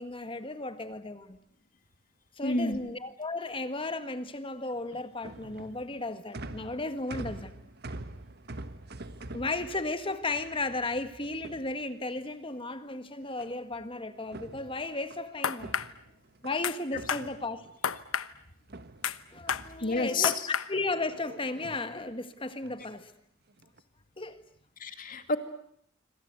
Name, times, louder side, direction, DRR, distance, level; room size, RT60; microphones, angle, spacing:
voice 1, 0.0-1.4 2.4-7.5 9.3-15.8 16.4-17.7 19.3-23.1 24.2-24.4, left 2 dB, 25° left, 1.6 m, -34 dB
voice 2, 2.4-2.8 19.8-20.3 24.8-25.4, left 3 dB, 40° left, 2.3 m, -29 dB
sound 1, 4.7-12.3 13.4-13.9 14.2-16.6 16.9-18.2 18.7-20.3 20.8-21.2 21.5-21.9 22.6-23.0 23.5-23.8, right 2 dB, 50° right, 1.5 m, -46 dB
sound 2, 15.4-15.9 16.6-16.8 17.1-17.3 17.8-18.3 19.0-19.2 19.5-19.7 20.2-20.7, left 7 dB, 80° left, 1.1 m, -30 dB
27.0 x 25.5 x 8.1 m
head